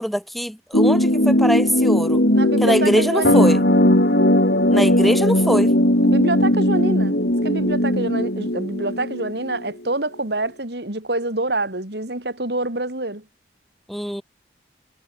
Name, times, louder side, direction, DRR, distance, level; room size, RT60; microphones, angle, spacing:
voice 1, 0.0-2.2 2.6-3.6 4.7-5.7 13.9-14.2, equal, ahead, 6.0 m, -22 dB
sound 1, 0.7-9.6, left 1 dB, 65° left, 5.0 m, -18 dB
voice 2, 2.3-3.7 6.0-13.2, right 2 dB, 70° right, 4.0 m, -26 dB
head